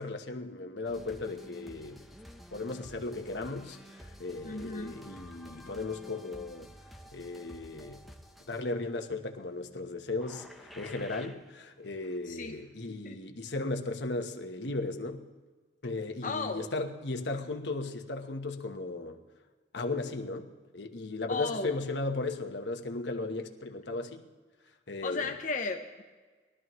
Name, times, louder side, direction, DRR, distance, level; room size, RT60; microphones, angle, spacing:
voice 1, 0.0-2.0 2.5-6.7 7.1-8.0 8.5-15.3 15.8-19.2 19.7-24.2 24.9-25.3, left 2 dB, 75° left, 1.1 m, -36 dB
sound 1, 0.9-9.1 10.2-11.5 11.8-12.3 12.5-12.6, equal, ahead, 0.8 m, -51 dB
voice 2, 4.4-5.0 12.3-12.6 12.9-13.2 16.2-16.7 21.3-21.7 25.0-26.0, left 3 dB, 45° left, 0.7 m, -35 dB
21.5 x 12.5 x 3.1 m
head